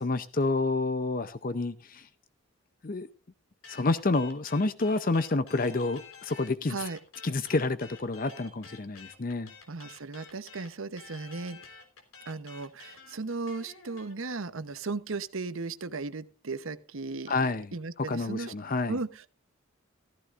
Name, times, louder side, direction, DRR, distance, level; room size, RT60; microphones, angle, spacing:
voice 1, 0.0-2.1 2.8-3.1 3.7-6.8 7.2-9.5 17.3-17.7 18.0-19.0, left 3 dB, 40° left, 0.6 m, -29 dB
sound 1, 3.6-6.5 6.8-14.1, left 5 dB, 85° left, 3.5 m, -50 dB
voice 2, 6.7-7.0 9.7-11.6 12.3-18.5 18.9-19.3, right 3 dB, 70° right, 0.9 m, -36 dB
15.0 x 14.5 x 2.5 m
head